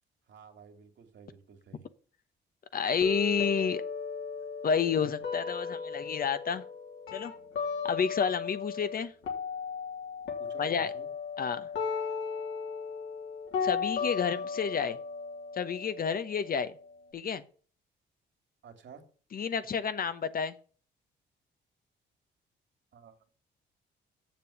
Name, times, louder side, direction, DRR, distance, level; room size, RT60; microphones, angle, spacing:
voice 1, 0.3-1.8 10.4-11.1 18.6-19.0 22.9-23.3, right 6 dB, 65° right, 2.5 m, -52 dB
voice 2, 2.7-3.8 4.6-6.6 7.1-7.3 7.8-9.1 10.6-10.9 11.4-11.7 13.6-15.0 15.5-16.7 17.1-17.4 19.3-20.6, left 6 dB, 45° left, 1.0 m, -30 dB
sound 1, 3.0-9.0 9.2-17.0, left 5 dB, 70° left, 3.1 m, -36 dB
7.5 x 7.1 x 8.3 m
cardioid pair, 90°, 20 cm